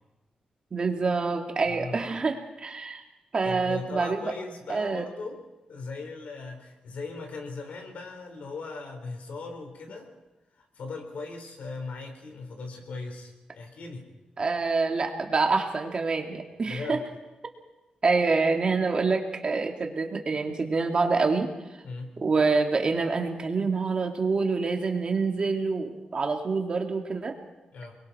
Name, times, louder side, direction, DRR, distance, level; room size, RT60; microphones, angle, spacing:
voice 1, 0.7-3.0 3.3-4.3 4.7-5.0 14.4-17.0 18.0-21.8 22.2-27.4, right 4 dB, 40° right, 3 dB, 2.2 m, -26 dB
voice 2, 1.6-2.0 3.4-5.4 5.7-10.1 10.6-14.1 16.6-17.0 21.8-22.2 27.7-28.0, left 3 dB, 70° left, 4 dB, 4.2 m, -38 dB
29.0 x 21.5 x 4.3 m, 1.0 s
wide cardioid pair, 120°, 3 cm